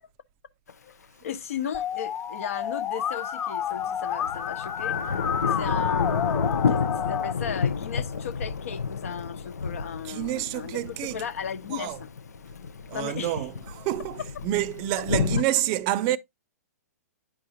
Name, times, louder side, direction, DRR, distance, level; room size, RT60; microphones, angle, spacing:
Thunder / Rain, 0.7-0.8 3.7-15.4, left 5 dB, 75° left, 0.5 m, -30 dB
voice 1, 1.2-12.1 12.9-13.5, left 8 dB, 60° left, 1.0 m, -36 dB
Musical instrument, 1.7-7.3, left 8 dB, 30° left, 1.2 m, -30 dB
voice 2, 10.0-11.2 11.7-12.0 12.9-16.2, right 14 dB, 35° right, 0.5 m, -28 dB
9.8 x 4.8 x 2.7 m
figure-of-eight pair, 115°, 9 cm